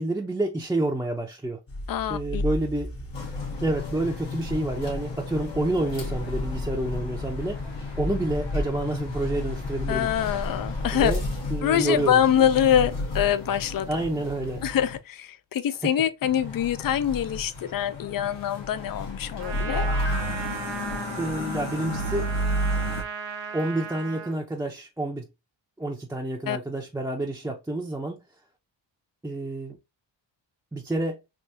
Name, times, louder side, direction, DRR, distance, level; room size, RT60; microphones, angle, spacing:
voice 1, 0.0-1.6 2.1-2.9 3.6-7.6 8.0-10.1 10.8-11.2 11.5-12.2 13.9-14.6 15.8-15.9 21.2-22.4 23.5-25.2 25.8-28.2 29.2-29.8 30.7-31.2, right 2 dB, 5° right, 0.6 m, -28 dB
sound 1, 1.7-11.4, left 1 dB, 30° left, 0.9 m, -33 dB
voice 2, 1.9-2.4 9.9-11.1 11.6-13.9 14.6-19.9 26.5-26.6, left 10 dB, 50° left, 0.5 m, -24 dB
sound 2, 3.1-15.0 16.2-23.0, left 1 dB, 75° left, 1.5 m, -33 dB
Trumpet, 19.4-24.4, right 6 dB, 80° right, 0.7 m, -36 dB
3.5 x 2.6 x 2.7 m
cardioid pair, 80°, 43 cm